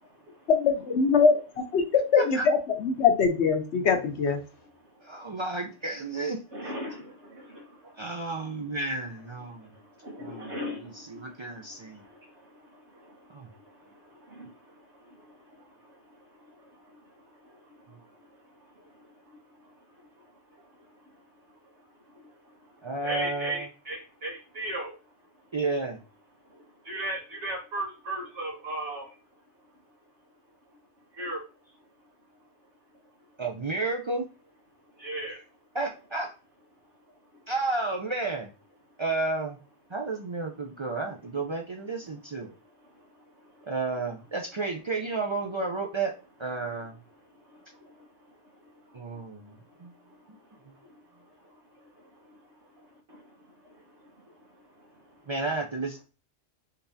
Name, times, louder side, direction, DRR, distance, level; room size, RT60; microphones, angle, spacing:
voice 1, 0.6-1.4 1.7-4.4, left 5 dB, 80° left, 5 dB, 1.1 m, -22 dB
voice 2, 5.0-6.7 8.0-9.7 10.2-12.0 13.3-13.5 22.8-23.7 25.5-26.0 33.4-34.3 35.7-36.3 37.5-38.5 39.0-39.6 39.9-42.5 43.7-46.1 46.4-47.0 48.9-49.5 49.8-49.9 55.3-56.0, right 3 dB, 45° right, 1 dB, 0.3 m, -32 dB
voice 3, 6.5-7.0 7.4-7.5 10.0-10.9 14.4-14.5 23.0-24.9 26.9-29.0 31.2-31.4 35.0-35.4, right 1 dB, 80° right, -1 dB, 1.5 m, -34 dB
3.8 x 3.5 x 2.6 m, 0.33 s
omnidirectional pair, 1.1 m